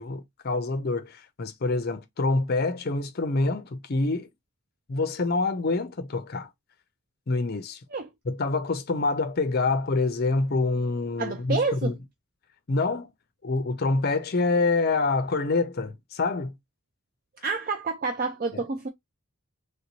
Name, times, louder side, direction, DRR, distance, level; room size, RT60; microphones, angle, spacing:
voice 1, 0.0-4.3 4.9-6.5 7.3-7.8 8.3-12.0 12.7-13.1 13.4-16.6 18.5-18.6, left 3 dB, 45° left, 0.5 m, -26 dB
voice 2, 11.2-12.0 17.4-18.9, right 4 dB, 40° right, 0.4 m, -28 dB
3.4 x 2.6 x 2.9 m
head